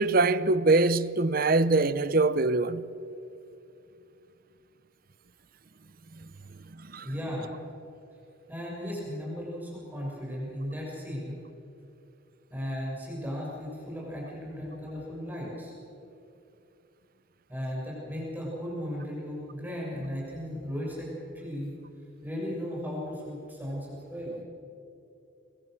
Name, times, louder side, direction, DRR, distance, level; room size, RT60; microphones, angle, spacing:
voice 1, 0.0-2.8 6.9-7.1, right 3 dB, 45° right, 0.7 m, -23 dB
voice 2, 7.0-7.5 8.5-11.3 12.5-15.7 17.5-21.7 22.2-24.4, equal, 10° right, 6.6 m, -36 dB
26.5 x 22.5 x 6.5 m
head